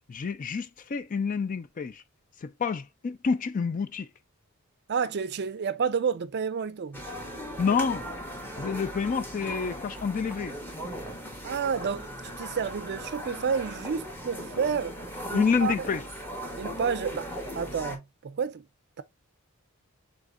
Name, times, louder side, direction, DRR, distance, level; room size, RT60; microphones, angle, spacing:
voice 1, 0.1-2.0 2.4-4.1 7.6-8.1 8.6-10.6 15.3-16.0, left 5 dB, 35° left, 0.4 m, -28 dB
voice 2, 4.9-7.0 11.4-15.0 15.3-15.7 16.6-17.3 17.5-18.7, right 6 dB, 50° right, 0.4 m, -30 dB
sound 1, 6.9-18.0, equal, 10° left, 1.2 m, -38 dB
5.1 x 3.5 x 2.4 m
head